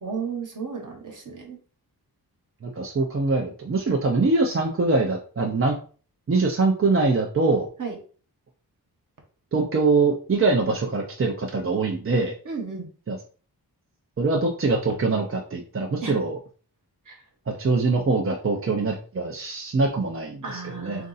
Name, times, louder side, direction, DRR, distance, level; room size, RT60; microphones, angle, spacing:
voice 1, 0.0-1.6 7.8-8.0 12.4-12.9 16.0-16.2 17.1-17.2 20.4-21.1, right 5 dB, 50° right, 2 dB, 1.2 m, -33 dB
voice 2, 2.6-5.8 6.3-7.7 9.5-12.3 13.1-13.2 14.2-16.4 17.5-21.0, right 3 dB, 35° right, 0 dB, 0.6 m, -23 dB
3.7 x 2.6 x 4.0 m, 0.39 s
wide cardioid pair, 140°, 39 cm